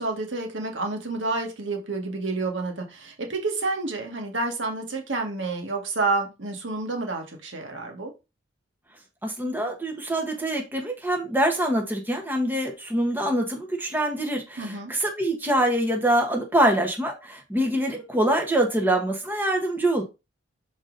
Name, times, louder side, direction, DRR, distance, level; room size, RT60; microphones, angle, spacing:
voice 1, 0.0-8.1 14.6-14.9, right 3 dB, 80° right, 1.5 m, -29 dB
voice 2, 9.2-20.0, right 1 dB, 10° right, 1.2 m, -24 dB
6.0 x 4.1 x 3.8 m
head